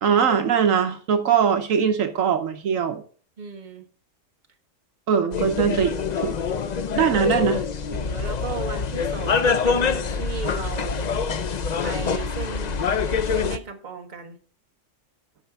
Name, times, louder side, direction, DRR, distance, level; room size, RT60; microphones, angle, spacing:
voice 1, 0.0-3.0 5.1-6.0 6.2-6.3 7.0-7.6, right 7 dB, 75° right, 1.3 m, -21 dB
voice 2, 3.4-3.8 7.9-11.2 11.8-12.8 13.3-14.4, right 5 dB, 35° right, 1.4 m, -35 dB
sound 1, 5.3-13.6, left 5 dB, 50° left, 0.5 m, -25 dB
11.5 x 5.2 x 5.8 m
omnidirectional pair, 1.4 m